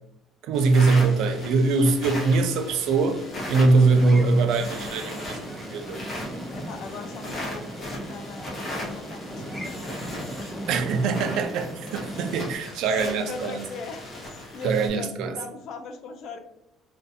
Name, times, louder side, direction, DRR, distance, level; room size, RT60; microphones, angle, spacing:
voice 1, 0.4-3.2 3.5-6.0 10.7-13.6 14.6-15.4, right 3 dB, 70° right, 0.4 m, -22 dB
sound 1, 0.5-14.9, left 1 dB, 30° left, 0.9 m, -38 dB
sound 2, 3.3-12.6, equal, 5° left, 0.5 m, -37 dB
voice 2, 6.5-10.0 12.8-16.4, left 4 dB, 55° left, 0.4 m, -39 dB
2.6 x 2.3 x 2.5 m
cardioid pair, 140°, 0 cm